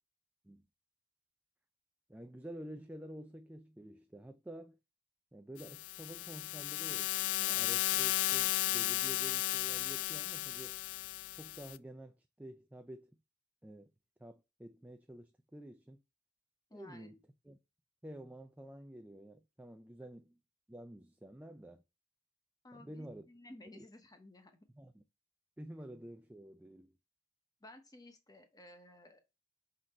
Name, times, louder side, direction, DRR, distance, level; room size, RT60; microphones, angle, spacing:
voice 1, 2.1-4.8 5.3-10.8 11.4-13.2 13.6-13.9 14.2-16.0 16.7-17.2 17.4-17.6 18.0-20.4 20.7-21.8 22.7-23.3 23.7-23.9 24.7-25.0 25.6-26.9, right 1 dB, 5° right, 0.4 m, -50 dB
sound 1, 5.6-11.8, left 16 dB, 85° left, 0.3 m, -34 dB
voice 2, 16.7-17.2 22.6-24.5 27.6-29.2, left 1 dB, 20° left, 0.9 m, -55 dB
6.2 x 4.0 x 4.3 m
head